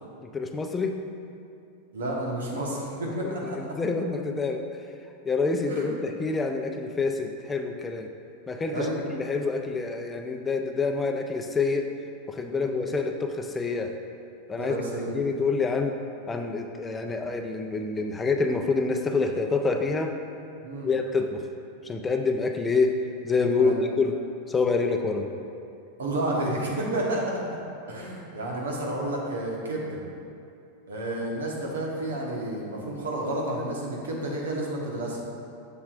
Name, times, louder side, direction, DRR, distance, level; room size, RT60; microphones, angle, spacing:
voice 1, 0.2-1.0 3.2-4.7 5.2-8.1 8.5-12.0 12.3-14.0 14.5-14.7 15.1-16.0 16.3-20.2 20.8-21.5 21.8-23.0 23.2-24.2 24.5-25.3, left 4 dB, 20° left, 4 dB, 0.5 m, -27 dB
voice 2, 1.9-3.6 5.7-5.9 8.7-9.0 12.5-12.8 14.6-15.1 20.6-20.9 23.6-23.8 26.0-27.6 27.9-30.0 30.9-35.2, right 1 dB, 75° right, -2 dB, 1.2 m, -30 dB
7.1 x 6.9 x 2.5 m, 2.5 s
hypercardioid pair, 95°, 0 cm